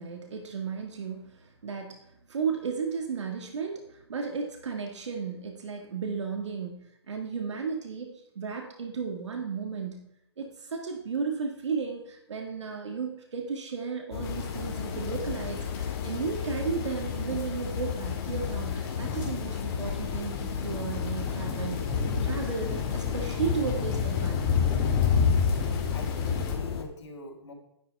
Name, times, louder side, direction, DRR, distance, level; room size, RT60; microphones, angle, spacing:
voice 1, 0.0-10.1 10.4-24.5, right 5 dB, 85° right, 3 dB, 1.7 m, -34 dB
sound 1, 14.1-26.8, left 7 dB, 60° left, 1.4 m, -34 dB
sound 2, 14.2-26.6, left 6 dB, 25° left, 2.1 m, -31 dB
voice 2, 25.6-27.5, left 2 dB, 85° left, 0 dB, 3.6 m, -43 dB
11.0 x 10.5 x 3.4 m, 0.80 s
hypercardioid pair, 150°, 15 cm